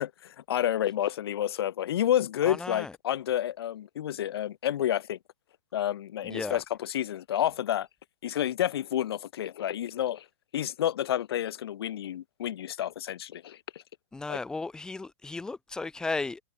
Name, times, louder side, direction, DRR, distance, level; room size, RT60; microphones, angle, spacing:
voice 1, 0.0-5.2 5.7-7.9 8.2-10.3 10.5-13.6 14.3-14.4, left 11 dB, 55° left, 3.7 m, -29 dB
voice 2, 2.4-2.9 6.2-6.6 14.1-16.4, left 3 dB, 5° left, 3.8 m, -34 dB
hypercardioid pair, 175°, 16 cm